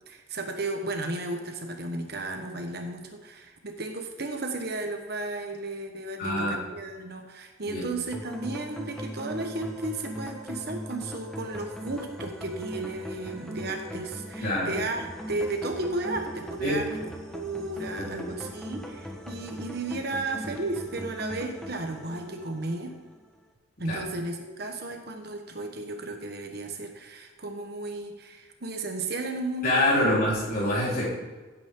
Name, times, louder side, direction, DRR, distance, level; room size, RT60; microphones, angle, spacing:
voice 1, 0.1-16.9 17.3-23.0 23.8-30.1, right 2 dB, 50° right, 4 dB, 1.3 m, -34 dB
voice 2, 6.2-6.6 7.7-7.9 14.4-14.7 16.6-16.8 18.0-18.3 23.8-24.0 29.6-31.1, left 1 dB, 45° left, -6 dB, 4.3 m, -25 dB
sound 1, 8.1-23.2, equal, ahead, 1.3 m, -39 dB
16.5 x 8.4 x 3.8 m, 1.3 s
head